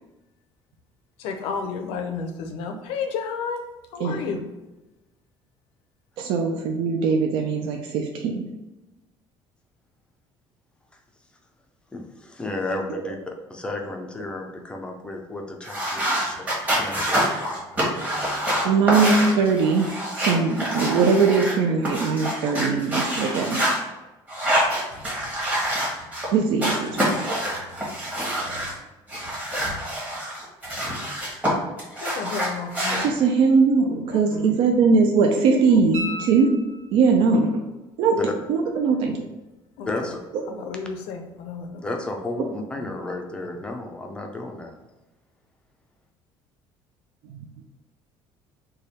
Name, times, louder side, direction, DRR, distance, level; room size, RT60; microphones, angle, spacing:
voice 1, 1.2-3.6 3.9-4.4 32.0-33.1 34.1-34.6 35.3-35.9 36.3-36.4 39.8-40.1 40.6-41.8 42.8-42.9, left 5 dB, 85° left, 5 dB, 0.6 m, -32 dB
voice 2, 6.2-8.5 12.9-13.1 18.6-23.8 26.3-27.2 32.9-36.5 36.9-37.6 38.0-38.2 38.5-39.2 47.3-47.5, right 4 dB, 65° right, 2 dB, 0.4 m, -21 dB
voice 3, 11.9-13.2 13.5-17.2 39.8-40.2 41.8-44.7, left 2 dB, 10° left, 2 dB, 0.4 m, -33 dB
sound 1, 15.6-21.5 21.8-23.8 24.3-26.3 26.6-28.7 29.1-31.5 31.8-33.1, equal, 15° right, 1.1 m, -26 dB
sound 2, 35.9-37.3 40.1-40.2, equal, 80° right, 1.1 m, -35 dB
3.3 x 2.2 x 4.1 m, 1.1 s
cardioid pair, 160°, 10 cm